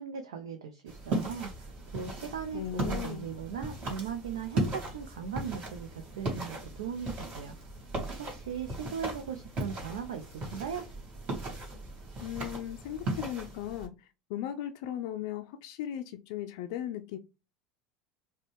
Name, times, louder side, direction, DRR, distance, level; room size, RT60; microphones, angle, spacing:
voice 1, 0.0-7.6 8.2-10.9, right 7 dB, 70° right, 0.5 m, -38 dB
sound 1, 0.9-13.9, right 2 dB, 40° right, 2.4 m, -37 dB
voice 2, 2.5-3.3 12.2-17.2, left 11 dB, 60° left, 0.4 m, -37 dB
5.0 x 2.2 x 3.2 m
figure-of-eight pair, 75°, 3 cm